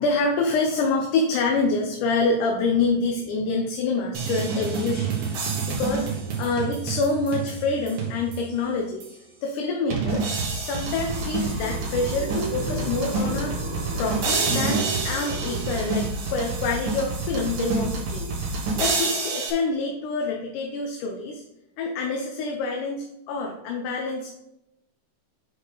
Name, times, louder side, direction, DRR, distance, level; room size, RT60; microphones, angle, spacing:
voice 1, 0.0-10.2 10.5-13.6 14.0-21.4 21.8-24.3, left 3 dB, 75° left, 1 dB, 2.2 m, -27 dB
sound 1, 4.1-8.6 9.0-9.1 9.9-19.5, right 3 dB, 85° right, 3.3 m, -28 dB
sound 2, 10.4-16.3, right 2 dB, 40° right, 2.2 m, -35 dB
8.6 x 5.1 x 3.9 m, 0.86 s
omnidirectional pair, 3.8 m